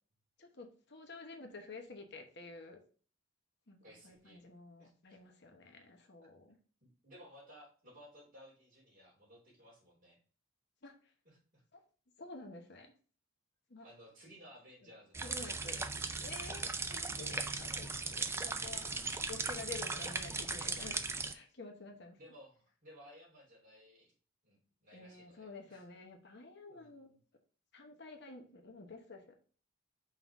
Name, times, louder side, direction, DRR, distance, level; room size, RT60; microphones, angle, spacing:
voice 1, 0.4-2.8 3.7-6.5 10.8-10.9 11.7-11.8 12.2-12.9 13.7-13.9 14.8-14.9 15.2-15.8 16.2-21.0 21.3-22.2 24.9-27.1 27.7-29.2, left 3 dB, 50° left, 4 dB, 1.0 m, -50 dB
voice 2, 3.8-4.4 4.8-5.2 7.0-10.2 11.2-11.6 13.8-15.9 16.6-16.8 19.9-20.2 22.2-24.1 24.4-25.8 26.7-27.1, equal, 40° right, -3 dB, 3.3 m, -58 dB
sound 1, 15.1-21.3, right 3 dB, 10° right, 0.3 m, -38 dB
5.7 x 3.9 x 4.8 m, 0.39 s
head